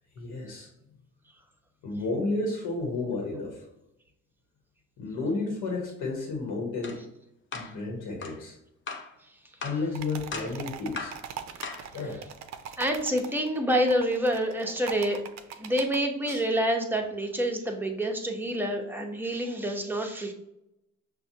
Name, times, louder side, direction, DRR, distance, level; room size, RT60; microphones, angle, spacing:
voice 1, 0.2-0.7 1.8-3.6 5.0-7.0 7.5-8.6 9.6-11.2 11.9-12.2 16.3-16.4, left 3 dB, 85° left, 0 dB, 1.0 m, -32 dB
sound 1, 6.8-7.0 7.5-7.7 8.2-8.4 8.9-9.1 9.6-9.8 10.3-10.6 11.0-11.2 11.6-11.9, left 4 dB, 40° left, 0.6 m, -37 dB
sound 2, 9.9-16.0, right 8 dB, 65° right, 0.5 m, -41 dB
voice 2, 12.8-15.2 15.6-20.3, equal, 5° right, 2 dB, 0.7 m, -27 dB
5.9 x 2.2 x 2.7 m, 0.83 s
cardioid pair, 90°, 30 cm